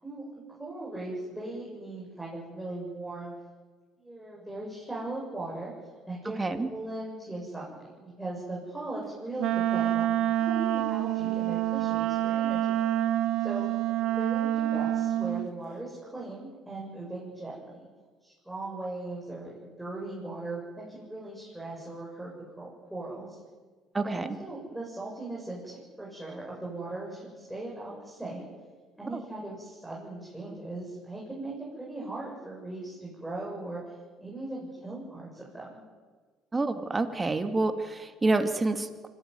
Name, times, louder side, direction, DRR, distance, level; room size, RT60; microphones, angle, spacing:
voice 1, 0.0-3.3 4.0-5.7 6.1-6.4 6.7-10.1 10.4-12.8 13.4-13.7 14.1-17.9 18.2-23.4 24.0-28.5 29.0-33.9 34.2-35.8, right 2 dB, 5° right, -5 dB, 7.8 m, -39 dB
Wind instrument woodwind instrument, 9.4-15.5, right 13 dB, 65° right, 1.0 m, -27 dB
voice 2, 23.9-24.3 36.5-39.1, right 2 dB, 20° right, 7 dB, 2.5 m, -28 dB
24.5 x 16.0 x 9.7 m, 1.4 s
supercardioid pair, 70°, 0 cm